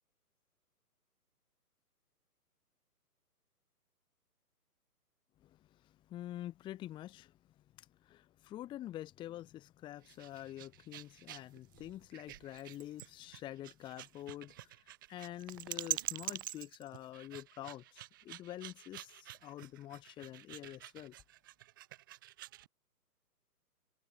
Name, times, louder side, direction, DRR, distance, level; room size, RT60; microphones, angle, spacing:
voice 1, 5.4-7.3 7.8-21.1, left 13 dB, 10° left, 1.4 m, -47 dB
sound 1, 10.0-22.7, right 15 dB, 15° right, 0.8 m, -46 dB
figure-of-eight pair, 135°, 47 cm